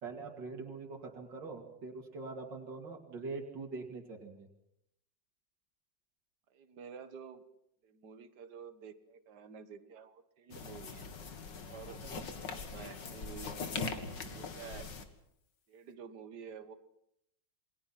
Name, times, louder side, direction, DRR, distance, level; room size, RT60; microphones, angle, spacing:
voice 1, 0.0-4.5 12.0-12.3 14.2-14.4, right 3 dB, 90° right, 1 dB, 3.1 m, -44 dB
voice 2, 6.5-7.5 7.8-11.0 11.6-12.1 12.6-14.9 15.7-16.8, right 7 dB, 65° right, 11 dB, 1.9 m, -50 dB
sound 1, 10.5-15.0, left 4 dB, 80° left, 2.5 m, -41 dB
28.5 x 20.5 x 5.9 m, 0.77 s
omnidirectional pair, 1.9 m